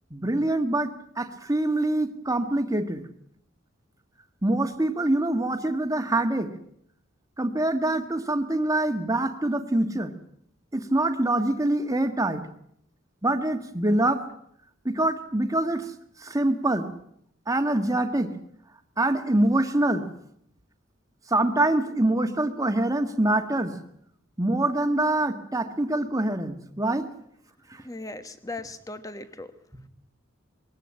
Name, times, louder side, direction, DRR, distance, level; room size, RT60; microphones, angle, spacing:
voice 1, 0.1-3.0 4.4-6.5 7.4-10.1 10.7-12.5 13.2-14.2 14.8-15.8 16.2-16.9 17.5-18.3 19.0-20.1 21.3-23.8 24.4-27.1 27.7-27.8, right 1 dB, 15° right, 7 dB, 1.6 m, -25 dB
voice 2, 27.8-29.5, left 2 dB, 15° left, 10 dB, 1.3 m, -38 dB
21.5 x 17.0 x 8.9 m, 0.70 s
head